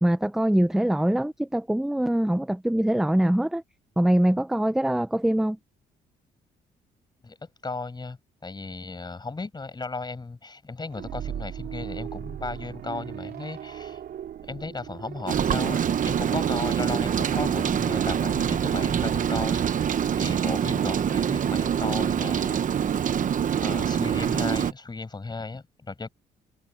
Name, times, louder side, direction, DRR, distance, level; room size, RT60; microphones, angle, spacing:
voice 1, 0.0-3.6 4.0-5.6, right 1 dB, 5° right, 0.6 m, -23 dB
voice 2, 7.2-14.0 14.4-23.1 23.6-26.1, left 3 dB, 25° left, 6.2 m, -36 dB
sound 1, 10.9-20.6, right 10 dB, 65° right, 2.8 m, -38 dB
Rain, 15.3-24.7, right 8 dB, 50° right, 1.0 m, -25 dB
cardioid pair, 80°, 17 cm